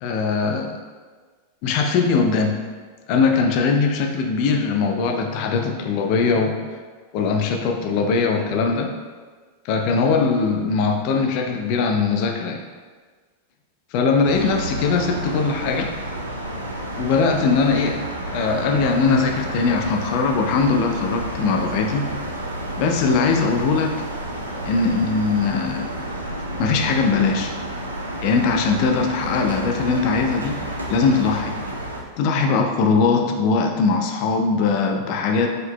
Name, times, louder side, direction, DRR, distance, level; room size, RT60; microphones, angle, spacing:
voice 1, 0.0-0.7 1.6-2.6 3.1-6.6 7.1-8.9 9.7-12.6 13.9-15.9 16.9-18.0 18.3-22.1 22.8-23.9 24.7-25.9 26.6-27.5 28.2-30.6 30.9-31.6 32.2-35.5, left 4 dB, 45° left, 3 dB, 0.4 m, -20 dB
sound 1, 14.2-32.0, right 1 dB, 80° right, 0.5 m, -30 dB
4.3 x 3.8 x 2.3 m, 1.5 s
figure-of-eight pair, 90°, 0 cm